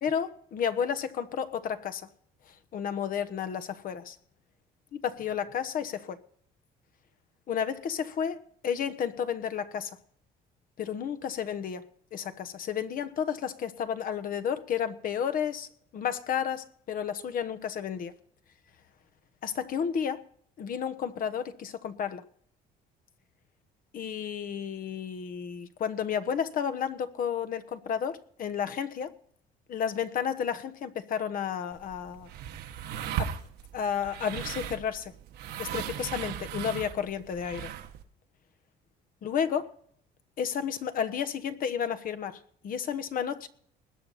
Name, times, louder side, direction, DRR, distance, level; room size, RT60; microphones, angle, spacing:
voice 1, 0.0-2.1 2.7-4.2 4.9-6.2 7.5-10.0 10.8-18.1 19.4-20.2 20.6-22.2 23.9-29.1 29.7-32.3 33.2-33.3 33.7-35.1 35.6-37.7 39.2-39.7 40.4-43.5, left 8 dB, 55° left, 1.2 m, -32 dB
sound 1, 31.7-38.0, right 10 dB, 75° right, 1.3 m, -37 dB
20.5 x 8.5 x 4.1 m
cardioid pair, 110°, 17 cm